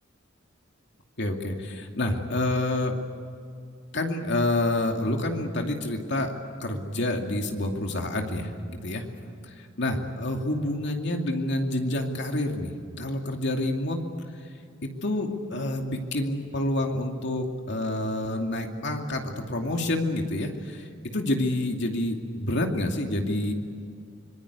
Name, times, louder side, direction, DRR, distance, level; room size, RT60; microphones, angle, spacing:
voice 1, 1.2-3.0 3.9-6.3 6.6-9.0 9.4-12.7 13.0-14.0 14.8-20.9 21.1-23.5, left 1 dB, 65° left, 2 dB, 2.6 m, -28 dB
25.5 x 22.5 x 8.3 m, 2.4 s
head